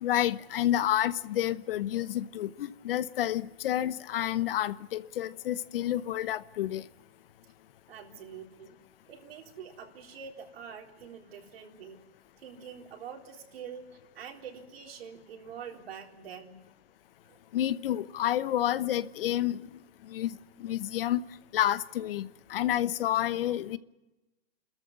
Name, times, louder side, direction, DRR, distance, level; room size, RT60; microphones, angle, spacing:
voice 1, 0.0-6.8 17.5-19.8 20.1-20.3 20.6-21.2 21.5-23.8, left 12 dB, 60° left, 1.0 m, -29 dB
voice 2, 7.9-8.8 9.1-12.0 12.4-13.9 14.1-16.7 17.2-17.4, right 7 dB, 65° right, 4.0 m, -45 dB
28.5 x 13.5 x 9.6 m
hypercardioid pair, 150°, 32 cm